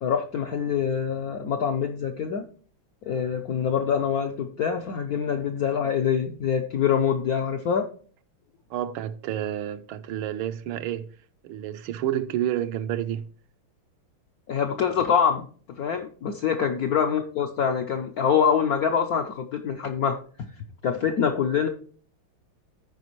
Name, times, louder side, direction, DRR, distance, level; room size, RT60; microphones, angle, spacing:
voice 1, 0.0-2.4 3.1-7.9 14.5-15.5 15.8-20.5 20.8-21.7, left 7 dB, 70° left, 0.8 m, -25 dB
voice 2, 8.7-11.1 11.4-13.3, right 11 dB, 80° right, 1.4 m, -29 dB
14.0 x 5.0 x 3.0 m
omnidirectional pair, 2.3 m